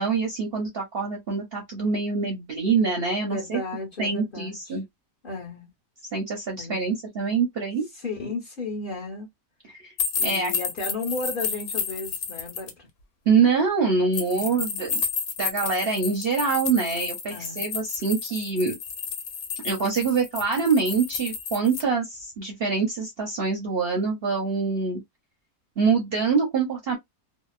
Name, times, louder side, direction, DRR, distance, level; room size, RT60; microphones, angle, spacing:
voice 1, 0.0-3.6 4.0-4.8 6.1-7.8 9.7-9.9 10.2-10.5 13.3-15.0 15.4-18.7 19.6-25.0 25.8-27.0, right 5 dB, 55° right, 0.7 m, -25 dB
voice 2, 3.3-4.8 5.2-5.7 6.6-6.8 7.9-9.3 10.2-12.9 14.3-14.5 17.3-17.6, left 3 dB, 40° left, 1.0 m, -34 dB
sound 1, 10.0-12.7 14.1-21.8, left 6 dB, 85° left, 1.2 m, -31 dB
2.8 x 2.0 x 2.3 m
omnidirectional pair, 1.6 m